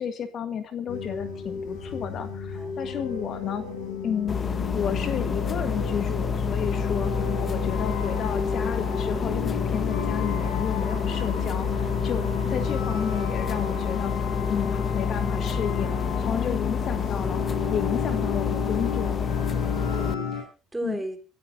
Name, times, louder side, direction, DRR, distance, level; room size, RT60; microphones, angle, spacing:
voice 1, 0.0-3.6 4.0-14.1 14.5-17.4 17.7-19.2 20.8-21.0, left 8 dB, 50° left, 9 dB, 1.7 m, -32 dB
sound 1, 0.9-20.4, left 5 dB, 75° left, 7.7 m, -33 dB
voice 2, 2.5-3.2 11.0-11.3 16.2-16.6 19.5-21.3, right 1 dB, 10° right, 3 dB, 4.3 m, -38 dB
sound 2, 4.3-20.1, left 6 dB, 35° left, 1.2 m, -28 dB
27.5 x 14.0 x 2.8 m, 0.33 s
hypercardioid pair, 65°, 0 cm